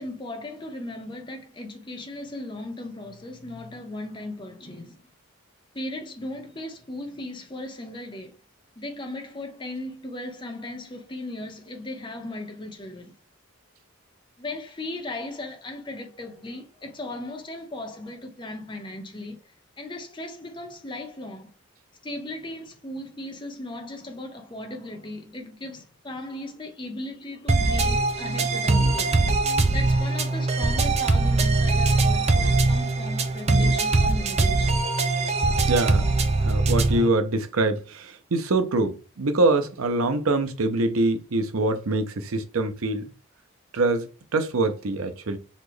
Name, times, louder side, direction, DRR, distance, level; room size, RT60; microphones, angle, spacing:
voice 1, 0.0-5.0 5.7-8.4 8.8-13.1 14.4-21.5 22.0-29.2 29.7-34.9, left 1 dB, 20° left, 0.8 m, -37 dB
sound 1, 27.5-37.1, right 3 dB, 30° right, 0.4 m, -22 dB
voice 2, 35.7-36.0 36.4-43.1 43.7-45.4, right 2 dB, 85° right, 0.7 m, -24 dB
4.2 x 2.9 x 3.2 m
head